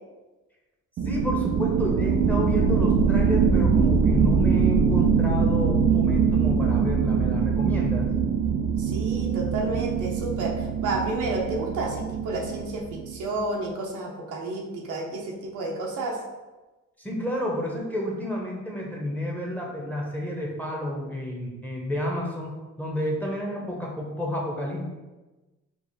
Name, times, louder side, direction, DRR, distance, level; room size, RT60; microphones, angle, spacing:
voice 1, 1.0-8.1 17.0-24.9, left 1 dB, 5° left, -2 dB, 0.9 m, -30 dB
sound 1, 1.0-13.2, right 6 dB, 50° right, 0.5 m, -23 dB
voice 2, 8.8-16.2, right 2 dB, 80° right, -1 dB, 0.9 m, -31 dB
4.7 x 2.0 x 4.0 m, 1.1 s
cardioid pair, 90°, 30 cm